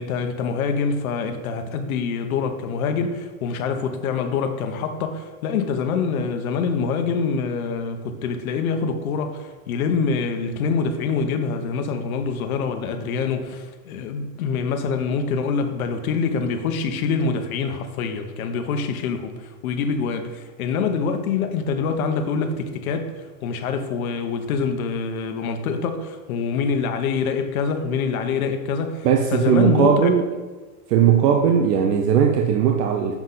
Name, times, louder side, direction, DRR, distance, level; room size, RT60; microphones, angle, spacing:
voice 1, 0.0-30.1, left 5 dB, 60° left, 1.1 m, -25 dB
voice 2, 29.0-30.2 30.9-33.2, right 8 dB, 75° right, 1.0 m, -18 dB
7.7 x 7.2 x 3.9 m
supercardioid pair, 170°, 48 cm